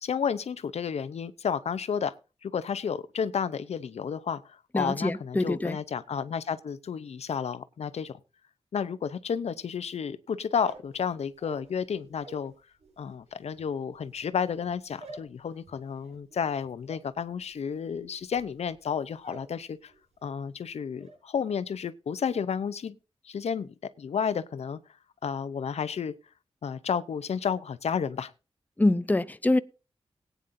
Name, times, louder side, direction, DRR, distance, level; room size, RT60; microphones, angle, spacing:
voice 1, 0.0-2.2 2.4-8.2 8.7-12.5 13.0-19.9 20.2-23.0 23.2-24.8 25.2-26.1 26.6-28.3, left 7 dB, 85° left, 0.7 m, -31 dB
voice 2, 4.7-5.8 28.8-29.6, left 2 dB, 15° left, 0.6 m, -25 dB
sound 1, 10.5-12.5 12.8-19.6 19.9-20.4 20.7-21.2, right 2 dB, 80° right, 7.7 m, -50 dB
18.5 x 9.3 x 2.7 m
cardioid pair, 60°, 11 cm